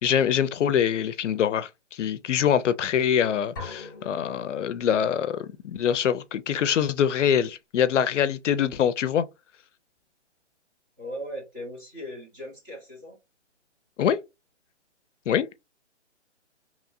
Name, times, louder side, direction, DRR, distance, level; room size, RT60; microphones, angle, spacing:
voice 1, 0.0-9.2 14.0-14.2 15.3-15.5, left 8 dB, 80° left, 0.5 m, -24 dB
sound 1, 3.6-5.4, left 4 dB, 20° left, 0.7 m, -42 dB
voice 2, 11.0-13.2, equal, 15° right, 0.9 m, -38 dB
2.9 x 2.7 x 2.5 m
hypercardioid pair, 165°, 36 cm